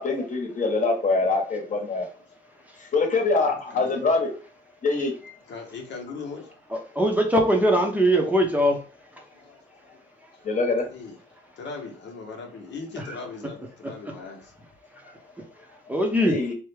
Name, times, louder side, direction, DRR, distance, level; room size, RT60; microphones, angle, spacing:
voice 1, 0.0-2.1 2.9-4.3 4.8-5.1 10.4-10.9 16.2-16.5, left 3 dB, 40° left, 1.1 m, -24 dB
voice 2, 3.4-4.1 5.5-6.5 9.3-10.0 10.9-11.2 11.6-14.5, left 4 dB, 65° left, 0.9 m, -39 dB
voice 3, 7.0-8.8 15.9-16.4, equal, 10° right, 0.7 m, -20 dB
3.4 x 2.1 x 3.3 m
cardioid pair, 90°, 20 cm